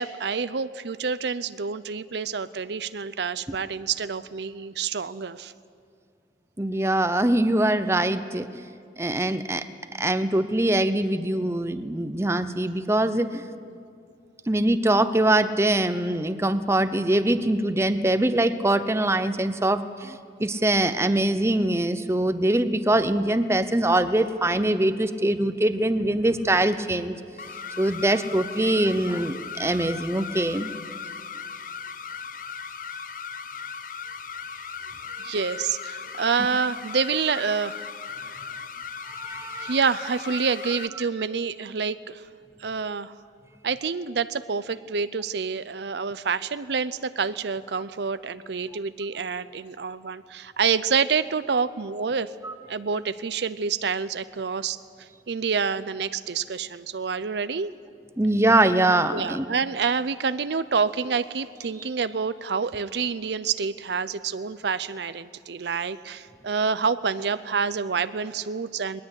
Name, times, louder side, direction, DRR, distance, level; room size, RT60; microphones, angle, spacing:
voice 1, 0.0-5.5 35.2-37.8 39.6-42.2 42.6-43.1 43.6-52.3 52.7-57.7 59.1-69.0, right 5 dB, 70° right, 14 dB, 0.6 m, -27 dB
voice 2, 6.6-8.7 9.0-9.6 10.0-13.4 14.5-27.2 27.8-30.7 39.1-39.7 52.4-52.5 58.2-59.5, right 1 dB, 15° right, 11 dB, 0.7 m, -23 dB
sound 1, 27.4-40.9, left 6 dB, 50° left, 0.7 m, -37 dB
20.5 x 20.0 x 8.2 m, 2.3 s
head